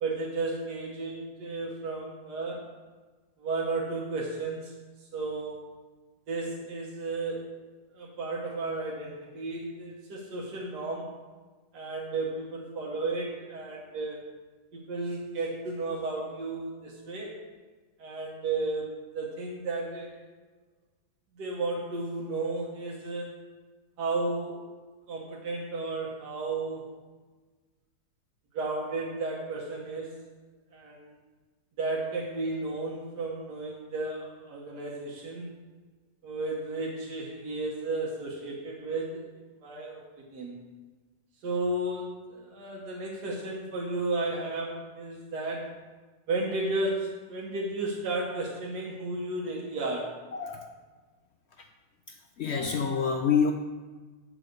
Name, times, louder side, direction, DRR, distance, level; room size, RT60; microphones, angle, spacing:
voice 1, 0.0-2.6 3.4-4.7 5.0-5.6 6.3-7.6 7.9-11.1 11.7-14.2 14.7-17.3 18.0-20.2 21.3-23.3 24.0-24.6 25.1-26.9 28.5-30.2 30.7-31.2 31.8-35.5 36.2-39.3 39.6-40.6 41.4-45.7 46.3-50.2, right 2 dB, 85° right, -2 dB, 1.7 m, -33 dB
voice 2, 50.3-50.7 51.6-51.7 52.1-53.5, left 6 dB, 75° left, 4 dB, 0.6 m, -27 dB
7.9 x 4.8 x 6.5 m, 1.3 s
omnidirectional pair, 1.7 m